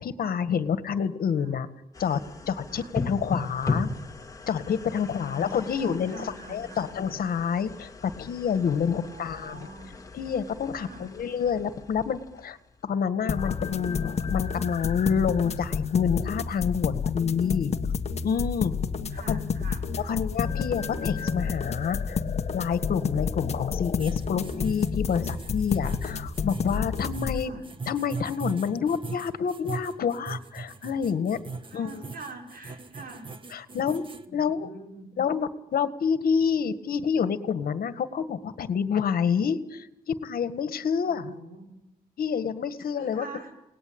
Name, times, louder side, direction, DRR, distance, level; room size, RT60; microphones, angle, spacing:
voice 1, 0.0-1.7 2.0-3.9 4.5-9.6 10.1-12.6 12.8-17.7 18.2-18.7 19.3-19.4 20.0-22.2 22.5-27.5 27.9-31.4 31.7-32.0 33.5-34.0 34.3-34.7 35.2-41.3 42.2-43.3, left 7 dB, 70° left, 11 dB, 1.8 m, -28 dB
sound 1, 1.9-13.0, left 3 dB, 20° left, 2.1 m, -37 dB
voice 2, 5.0-6.9 8.9-9.9 10.8-11.1 18.7-20.2 27.4-27.6 31.6-33.3 34.3-35.1 41.0-41.7 42.8-43.5, right 3 dB, 70° right, 3 dB, 5.9 m, -45 dB
sound 2, 13.3-27.4, left 5 dB, 45° left, 1.5 m, -30 dB
sound 3, 24.0-34.2, right 4 dB, 30° right, 1.6 m, -39 dB
30.0 x 19.0 x 8.8 m, 0.85 s
wide cardioid pair, 150°, 16 cm